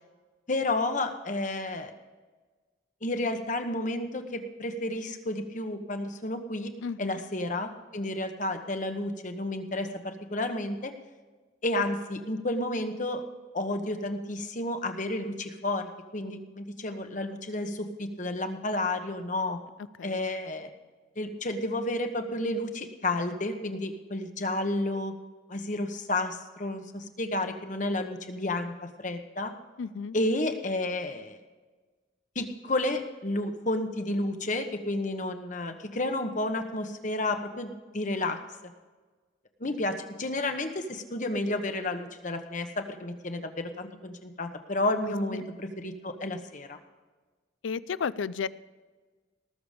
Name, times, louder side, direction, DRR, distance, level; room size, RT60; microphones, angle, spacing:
voice 1, 0.5-1.9 3.0-6.7 7.0-10.9 11.6-13.2 13.5-19.6 20.0-20.7 21.2-25.1 25.5-29.5 30.1-31.4 32.3-38.4 39.6-46.8, left 2 dB, 40° left, 6 dB, 1.1 m, -31 dB
voice 2, 6.8-7.2 20.0-20.3 29.8-30.2 45.1-45.4 47.6-48.5, left 6 dB, 75° left, 17 dB, 0.4 m, -33 dB
19.0 x 6.9 x 5.1 m, 1.3 s
head